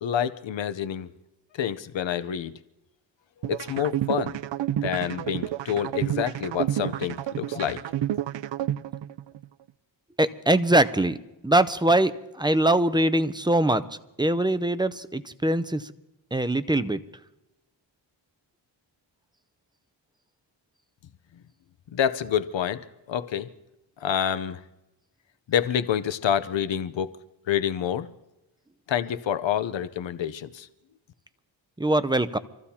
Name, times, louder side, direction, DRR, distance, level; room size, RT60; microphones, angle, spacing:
voice 1, 0.0-1.1 1.5-2.5 3.5-4.4 4.8-7.8 21.9-23.5 24.0-24.6 25.5-27.1 27.5-28.1 28.9-30.7, left 9 dB, 70° left, 0.8 m, -27 dB
sound 1, 3.4-9.4, right 12 dB, 65° right, 0.6 m, -29 dB
voice 2, 10.2-11.2 11.4-13.8 14.2-15.9 16.3-17.0 31.8-32.4, right 1 dB, 10° right, 0.6 m, -22 dB
26.0 x 14.5 x 2.8 m
cardioid pair, 90°, 46 cm